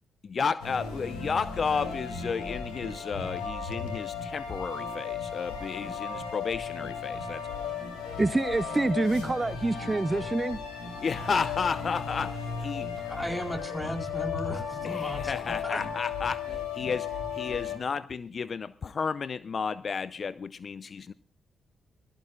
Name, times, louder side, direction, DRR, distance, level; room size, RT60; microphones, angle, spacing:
voice 1, 0.2-7.5 11.0-12.9 14.8-21.1, left 5 dB, 50° left, 0.5 m, -32 dB
sound 1, 0.6-17.8, left 6 dB, 85° left, 3.2 m, -35 dB
voice 2, 8.2-10.6, right 2 dB, 25° right, 0.5 m, -26 dB
voice 3, 12.8-15.8, equal, 10° left, 4.4 m, -36 dB
22.0 x 14.5 x 2.4 m
hypercardioid pair, 45°, 0 cm